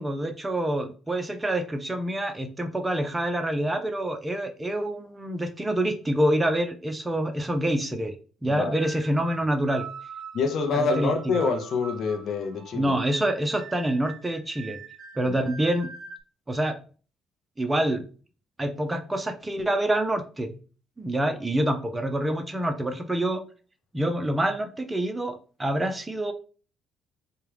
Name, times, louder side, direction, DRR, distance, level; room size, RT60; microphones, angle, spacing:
voice 1, 0.0-8.1 8.4-9.8 10.7-11.4 12.7-14.8 15.2-15.9 16.5-16.8 17.6-18.0 18.6-20.6 21.0-23.4 23.9-26.3, right 1 dB, 20° right, 0.6 m, -26 dB
sound 1, 8.6-16.2, right 5 dB, 45° right, 0.9 m, -43 dB
voice 2, 10.3-12.9 15.3-15.4, left 4 dB, 60° left, 0.6 m, -26 dB
4.5 x 2.3 x 3.3 m
supercardioid pair, 65°, 0 cm